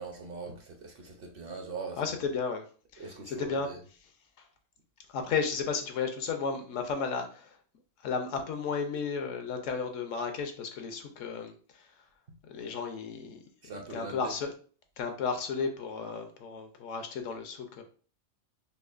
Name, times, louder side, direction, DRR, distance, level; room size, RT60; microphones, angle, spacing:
voice 1, 0.0-2.1 3.0-3.8 13.6-14.3, right 4 dB, 55° right, 3 dB, 0.8 m, -41 dB
voice 2, 2.0-2.6 2.9-3.7 4.0-4.1 4.4-4.5 5.1-7.6 8.0-12.0 12.4-13.4 13.9-14.5 15.0-17.8, left 5 dB, 80° left, 6 dB, 1.0 m, -33 dB
5.5 x 2.1 x 2.4 m, 0.40 s
omnidirectional pair, 1.3 m